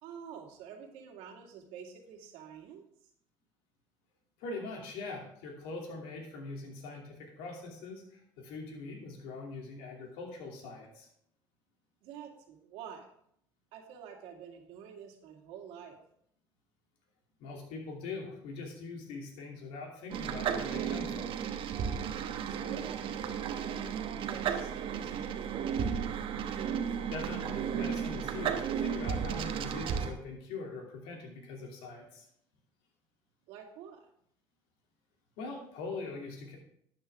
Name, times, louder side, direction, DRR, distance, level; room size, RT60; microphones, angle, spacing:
voice 1, 0.0-2.9 12.0-13.1 13.7-16.0 22.5-23.4 23.7-25.8 33.5-34.1, right 7 dB, 80° right, 2 dB, 2.2 m, -48 dB
voice 2, 4.4-11.1 17.4-21.3 27.1-32.3 35.4-36.6, left 3 dB, 80° left, 1 dB, 2.7 m, -42 dB
sound 1, 20.1-30.1, right 7 dB, 60° right, 1.1 m, -34 dB
12.0 x 8.8 x 3.6 m, 0.70 s
supercardioid pair, 85°, 10 cm